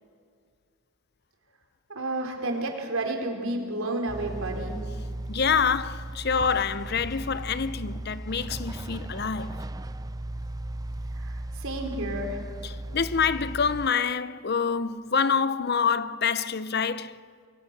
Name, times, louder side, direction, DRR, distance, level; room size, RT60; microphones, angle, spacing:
voice 1, 1.9-4.8 11.1-12.4, right 2 dB, 85° right, 4.3 m, -31 dB
sound 1, 4.1-13.9, right 1 dB, 20° right, 0.5 m, -36 dB
voice 2, 5.3-9.7 12.6-17.2, left 6 dB, 50° left, 0.7 m, -26 dB
26.0 x 23.0 x 6.8 m
head